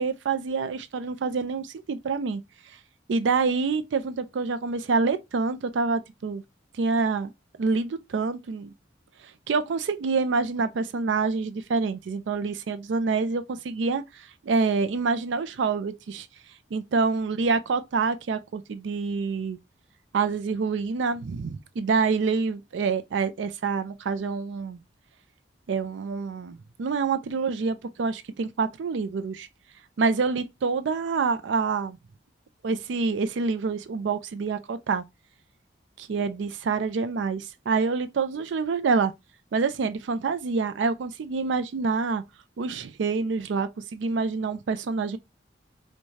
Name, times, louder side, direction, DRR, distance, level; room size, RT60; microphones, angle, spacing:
voice 1, 0.0-2.4 2.7-2.8 3.1-6.4 6.7-7.3 7.6-8.7 9.2-16.3 16.7-19.6 20.1-24.8 25.7-29.5 30.0-32.0 32.6-35.0 36.0-39.1 39.5-42.2 42.6-45.2, right 4 dB, 70° right, 0.4 m, -27 dB
4.6 x 2.2 x 2.7 m
head